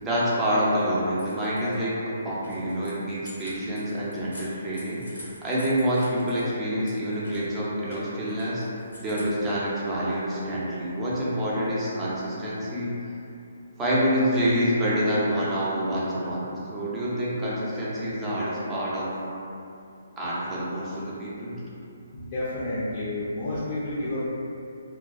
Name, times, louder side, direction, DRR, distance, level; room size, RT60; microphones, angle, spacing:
voice 1, 0.0-8.6 9.0-13.1 13.8-19.2 20.2-21.6, equal, 15° right, -8 dB, 0.5 m, -27 dB
sound 1, 1.0-1.8 2.1-6.5 6.8-9.5, left 1 dB, 85° left, 0.6 m, -47 dB
voice 2, 22.1-24.2, left 1 dB, 40° left, -10 dB, 0.5 m, -30 dB
2.2 x 2.2 x 2.5 m, 2.6 s
hypercardioid pair, 145°, 0 cm